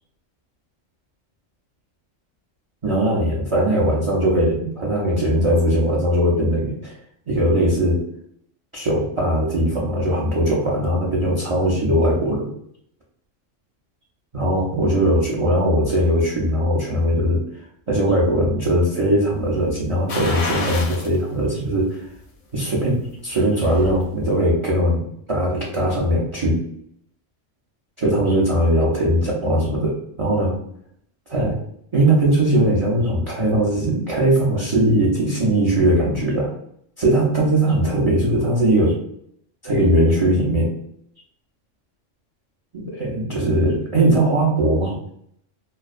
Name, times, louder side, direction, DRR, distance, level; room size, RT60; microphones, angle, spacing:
voice 1, 2.8-6.9 7.3-8.0 8.7-12.5 14.3-17.4 17.9-22.0 22.5-26.6 28.0-30.6 31.3-31.6 31.9-36.5 37.0-39.0 39.6-40.7 42.7-45.0, right 1 dB, 50° right, -5 dB, 0.3 m, -20 dB
sound 1, 20.1-21.2 21.6-21.7 23.2-24.0 24.3-24.4, left 3 dB, 65° left, 0.3 m, -28 dB
2.3 x 2.2 x 2.4 m, 0.68 s
omnidirectional pair, 1.3 m